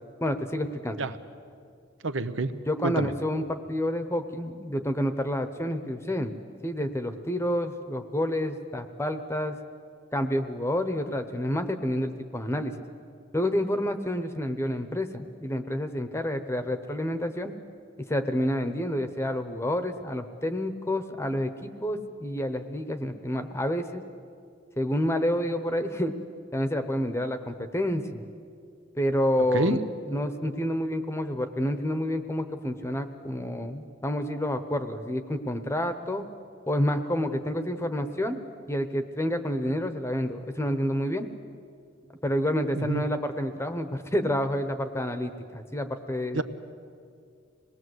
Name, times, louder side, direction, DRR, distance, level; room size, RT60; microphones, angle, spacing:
voice 1, 0.2-1.0 2.7-6.3 6.6-9.6 10.1-12.8 13.3-17.5 18.0-24.0 24.8-26.1 26.5-28.2 28.9-29.8 30.1-36.2 36.7-38.4 38.7-41.3 42.2-46.4, equal, 15° left, 8 dB, 1.0 m, -29 dB
voice 2, 2.0-2.5 2.8-3.1 29.5-29.8 42.7-43.0 46.3-46.4, right 2 dB, 75° right, 11 dB, 1.0 m, -27 dB
26.0 x 19.5 x 8.0 m, 2.3 s
head